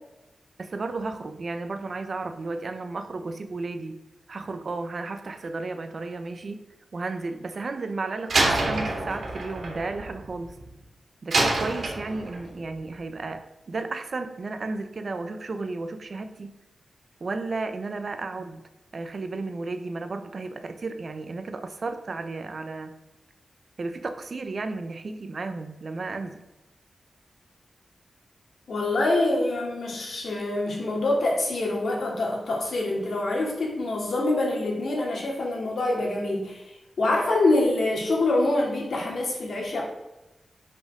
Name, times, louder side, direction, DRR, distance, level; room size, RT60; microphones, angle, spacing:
voice 1, 0.6-4.0 4.3-6.6 6.9-10.6 11.2-16.5 17.2-18.6 18.9-22.9 23.8-26.4, right 3 dB, 50° right, 8 dB, 0.9 m, -33 dB
Slam, 8.3-10.7 11.3-12.5, right 2 dB, 70° right, 2.3 m, -27 dB
voice 2, 28.7-36.6 37.0-39.8, left 2 dB, 75° left, -2 dB, 2.8 m, -25 dB
11.0 x 5.7 x 3.8 m, 1.0 s
wide cardioid pair, 140°, 0 cm